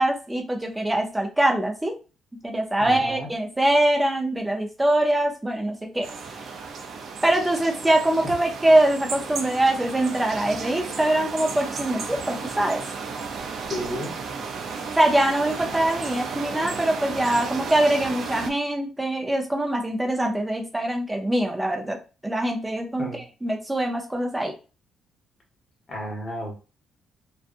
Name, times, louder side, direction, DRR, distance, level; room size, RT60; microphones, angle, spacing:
voice 1, 0.0-1.9 2.4-6.1 6.4-6.5 7.2-12.8 14.9-22.0 22.2-24.5, right 1 dB, 10° right, 2 dB, 0.6 m, -23 dB
voice 2, 2.8-3.3 13.7-14.1 23.0-23.2 25.9-26.6, equal, 35° left, -1 dB, 1.2 m, -32 dB
sound 1, 6.0-18.5, right 5 dB, 60° right, 0.5 m, -34 dB
2.5 x 2.3 x 2.5 m, 0.33 s
cardioid pair, 90°, 0 cm